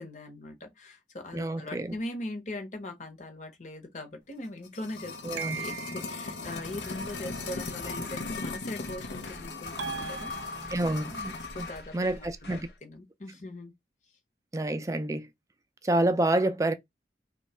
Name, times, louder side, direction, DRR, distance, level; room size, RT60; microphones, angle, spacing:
voice 1, 0.0-10.8 11.5-13.7, left 1 dB, 45° left, 0.9 m, -41 dB
voice 2, 1.3-1.9 5.3-5.6 10.7-11.4 11.9-12.7 14.5-15.3 15.8-16.7, right 1 dB, 20° right, 0.3 m, -28 dB
sound 1, 4.4-11.8 12.1-12.2, left 3 dB, 90° left, 0.6 m, -38 dB
sound 2, 5.4-6.3 9.8-11.0, right 7 dB, 85° right, 0.5 m, -38 dB
sound 3, 6.4-12.8, left 1 dB, 65° left, 1.0 m, -46 dB
3.1 x 2.3 x 4.2 m
head